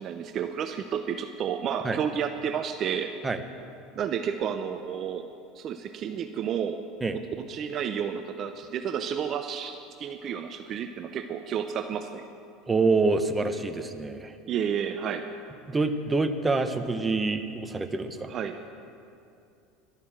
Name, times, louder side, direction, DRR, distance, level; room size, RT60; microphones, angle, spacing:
voice 1, 0.0-3.1 4.0-5.3 5.6-6.8 7.5-12.2 14.5-15.3 18.3-18.6, right 8 dB, 45° right, 7 dB, 0.7 m, -31 dB
voice 2, 12.7-14.3 15.7-18.3, right 3 dB, 15° right, 8 dB, 1.1 m, -26 dB
12.5 x 11.5 x 7.4 m, 2.5 s
hypercardioid pair, 95°, 0 cm